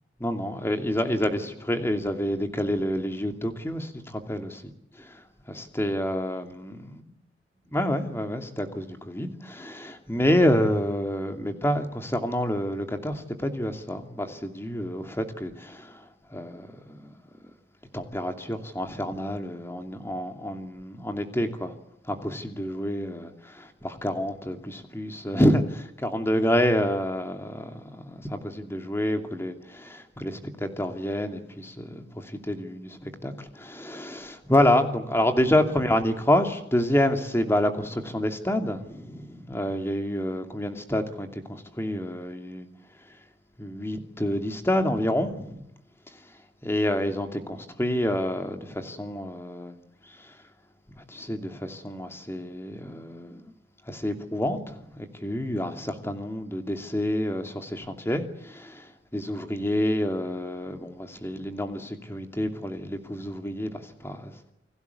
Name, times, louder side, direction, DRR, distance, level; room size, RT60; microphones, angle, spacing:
voice 1, 0.2-4.6 5.0-5.2 5.5-7.0 7.7-16.0 16.3-17.1 17.9-21.7 22.1-42.7 43.6-45.6 46.6-49.7 50.2-50.3 51.1-53.4 53.9-64.5, left 1 dB, 15° left, 2.7 m, -28 dB
29.0 x 20.0 x 8.4 m
head